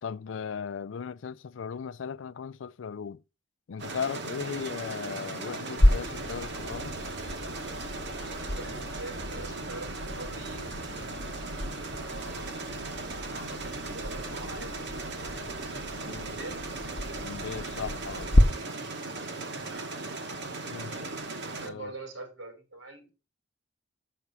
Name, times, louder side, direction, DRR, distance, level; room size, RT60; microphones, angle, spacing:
voice 1, 0.0-3.2 3.7-7.0 16.0-16.4 17.2-18.3 20.7-21.0 21.6-21.9, left 6 dB, 75° left, 0.4 m, -37 dB
sound 1, 3.8-21.7, right 3 dB, 65° right, 1.3 m, -38 dB
voice 2, 4.4-4.7 8.5-10.7 11.9-12.5 13.3-15.6 16.2-16.6 19.6-19.9 20.9-21.1 21.6-23.1, right 2 dB, 90° right, 4.2 m, -44 dB
sound 2, 5.8-18.4, left 1 dB, 45° left, 0.9 m, -30 dB
6.1 x 5.8 x 6.8 m
head